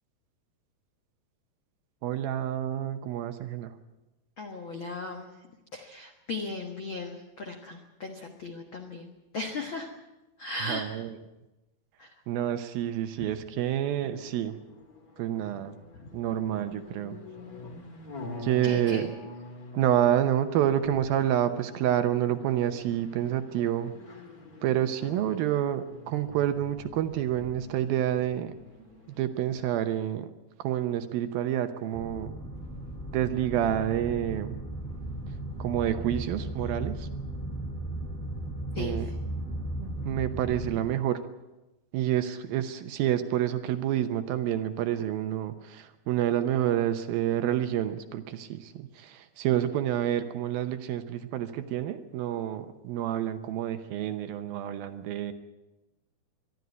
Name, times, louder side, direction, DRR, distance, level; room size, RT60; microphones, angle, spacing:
voice 1, 2.0-3.8 10.6-11.1 12.3-14.6 15.2-15.8 16.1-17.2 18.4-19.1 19.7-23.9 24.6-28.5 29.1-30.3 30.6-32.3 33.1-34.6 35.6-37.1 38.8-39.1 40.0-41.2 41.9-55.3, right 11 dB, 75° right, 10 dB, 2.5 m, -28 dB
voice 2, 4.4-5.3 5.7-9.9 10.4-10.9 12.0-12.1 13.2-13.3 16.0-16.1 18.6-19.1 38.7-39.0, left 3 dB, 85° left, 3 dB, 1.1 m, -37 dB
sound 1, 14.0-29.6, left 2 dB, 30° left, 1.8 m, -46 dB
sound 2, 31.9-40.8, right 1 dB, 10° left, 3.0 m, -36 dB
22.5 x 12.5 x 9.5 m, 1.0 s
omnidirectional pair, 4.8 m